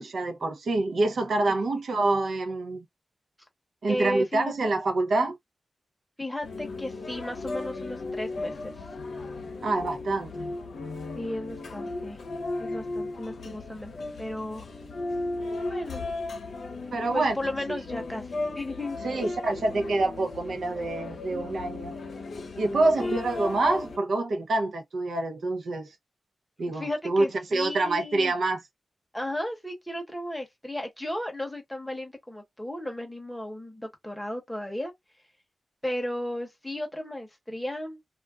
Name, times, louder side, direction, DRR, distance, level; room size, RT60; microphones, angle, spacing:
voice 1, 0.0-2.9 3.8-5.4 9.6-10.3 16.9-17.4 17.7-17.8 19.0-22.0 22.6-25.9 26.6-27.2 27.5-28.6, right 2 dB, 70° right, 0.5 m, -26 dB
voice 2, 3.9-4.5 6.2-8.7 11.2-12.2 12.6-13.9 14.2-14.7 15.7-16.0 17.1-19.3 23.0-23.2 26.7-28.3 29.1-34.9 35.8-38.0, left 1 dB, 5° left, 0.8 m, -34 dB
sound 1, 6.4-24.0, left 2 dB, 80° left, 0.6 m, -36 dB
2.3 x 2.1 x 3.5 m
wide cardioid pair, 160°, 0 cm